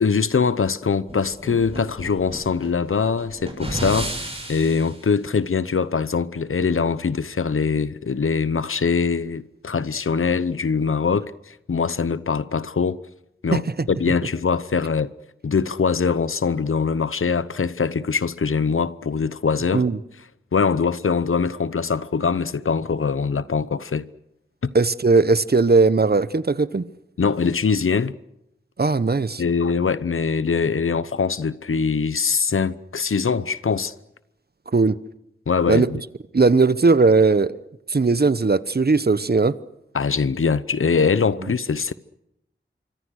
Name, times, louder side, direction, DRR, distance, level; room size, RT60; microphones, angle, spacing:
voice 1, 0.0-4.1 4.5-13.0 13.4-15.1 15.4-19.9 20.5-24.1 24.6-24.7 27.2-28.1 29.4-33.9 35.5-36.0 39.9-41.9, left 5 dB, 80° left, 0.8 m, -22 dB
sound 1, 1.1-5.0, right 1 dB, 30° right, 7.2 m, -33 dB
voice 2, 24.7-26.8 28.8-29.4 34.7-35.0 35.7-35.9 36.3-37.6 37.9-39.5, right 3 dB, 50° right, 1.0 m, -18 dB
26.0 x 24.0 x 6.5 m
wide cardioid pair, 50°, 21 cm